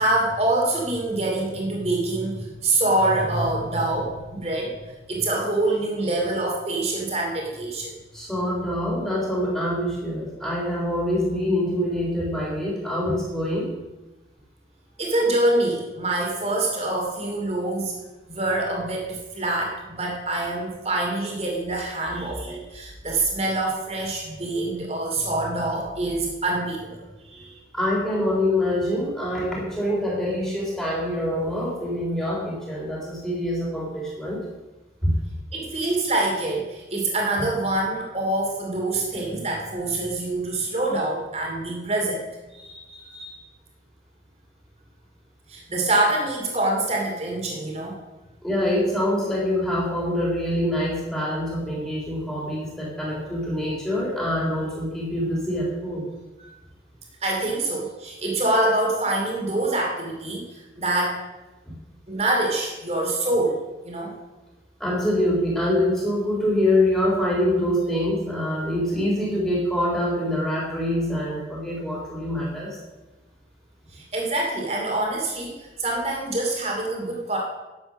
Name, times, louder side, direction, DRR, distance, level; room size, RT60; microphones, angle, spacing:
voice 1, 0.0-4.8 5.1-7.9 15.0-18.0 18.3-27.6 35.5-42.3 42.5-43.4 45.5-48.0 56.4-56.5 57.2-61.2 62.1-64.1 73.9-77.4, right 2 dB, 35° right, -1 dB, 2.7 m, -25 dB
voice 2, 8.1-13.7 27.7-34.4 35.0-35.1 48.4-56.1 64.8-72.8, left 1 dB, 5° left, -5 dB, 3.6 m, -25 dB
11.0 x 7.8 x 6.3 m, 1.1 s
head